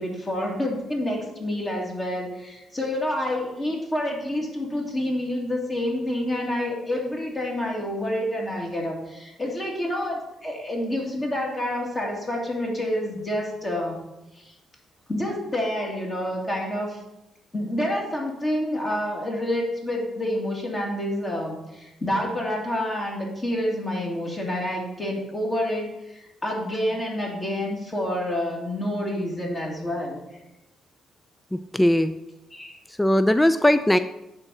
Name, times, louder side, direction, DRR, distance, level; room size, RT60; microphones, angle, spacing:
voice 1, 0.0-14.0 14.3-14.5 15.1-17.0 17.5-30.2 32.5-32.8, left 1 dB, 30° left, -1 dB, 2.1 m, -28 dB
voice 2, 31.5-32.2 32.9-34.0, left 1 dB, 10° left, 11 dB, 0.3 m, -20 dB
8.8 x 3.8 x 6.2 m, 0.91 s
cardioid pair, 90°, 0 cm